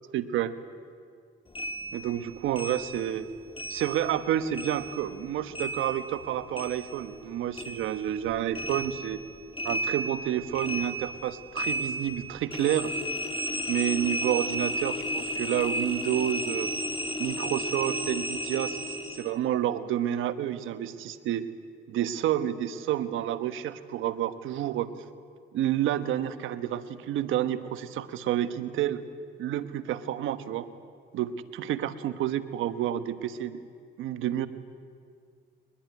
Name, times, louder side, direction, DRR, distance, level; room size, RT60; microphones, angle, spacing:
voice 1, 0.1-0.5 1.9-3.3 3.7-9.2 9.6-12.9 13.7-16.7 17.2-21.5 21.9-24.9 25.5-29.0 29.4-30.7 31.1-33.6 34.0-34.5, right 11 dB, 85° right, 11 dB, 1.2 m, -29 dB
sound 1, 1.5-4.3 4.5-7.3 7.5-19.3, equal, 25° left, 2.0 m, -34 dB
22.5 x 20.5 x 9.6 m, 2.2 s
cardioid pair, 90°, 20 cm